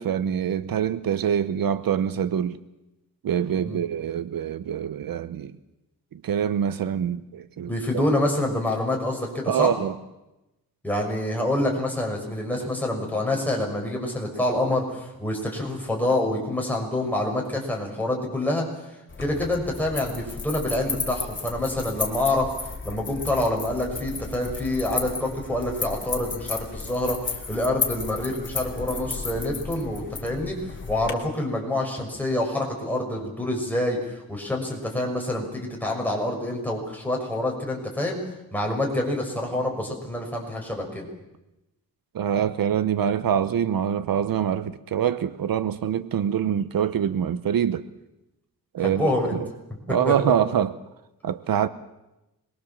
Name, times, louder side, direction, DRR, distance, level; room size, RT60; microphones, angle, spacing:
voice 1, 0.0-2.6 3.2-5.5 6.1-7.7 9.5-9.9 42.1-47.9 48.7-49.5 49.9-50.8 51.2-51.7, right 9 dB, 70° right, 0.9 m, -25 dB
voice 2, 7.7-9.7 10.8-18.7 19.2-22.5 22.8-38.2 38.5-41.1 48.8-49.4 50.0-50.1, left 1 dB, 5° left, 6.5 m, -27 dB
sound 1, 19.1-31.1, left 4 dB, 35° left, 3.2 m, -33 dB
26.0 x 21.5 x 7.4 m
wide cardioid pair, 115°, 35 cm